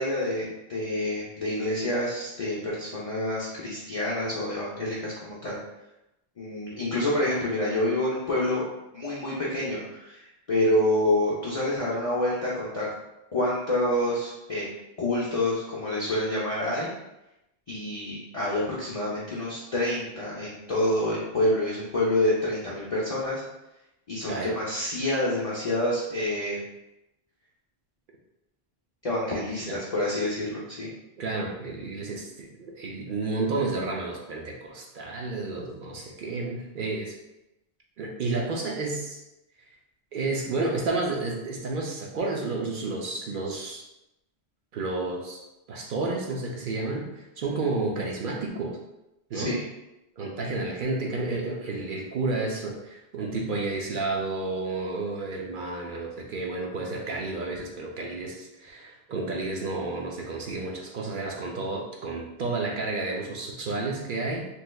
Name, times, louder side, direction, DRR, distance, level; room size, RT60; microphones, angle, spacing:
voice 1, 0.0-5.6 6.4-8.6 8.9-12.9 13.3-14.7 15.0-16.9 17.7-23.4 24.1-26.6 29.0-30.9 49.3-49.6, left 1 dB, 40° left, -7 dB, 0.5 m, -27 dB
voice 2, 31.2-37.1 38.0-39.2 40.1-43.8 44.7-45.4 45.7-48.8 49.3-49.6 50.2-64.5, right 3 dB, 60° right, -1 dB, 0.6 m, -31 dB
3.1 x 3.1 x 2.2 m, 0.91 s
omnidirectional pair, 1.1 m